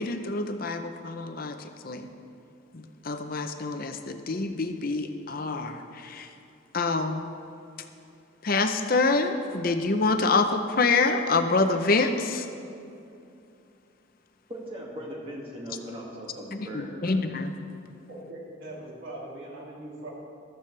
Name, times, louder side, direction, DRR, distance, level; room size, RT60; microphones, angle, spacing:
voice 1, 0.0-2.1 2.7-6.4 6.7-7.3 7.8-7.9 8.4-12.5 16.5-17.5, left 3 dB, 45° left, 7 dB, 0.6 m, -26 dB
voice 2, 14.5-17.2, equal, 25° right, -3 dB, 2.0 m, -39 dB
voice 3, 18.1-20.1, right 1 dB, 75° right, -4 dB, 3.0 m, -41 dB
15.0 x 13.5 x 3.3 m, 2.6 s
head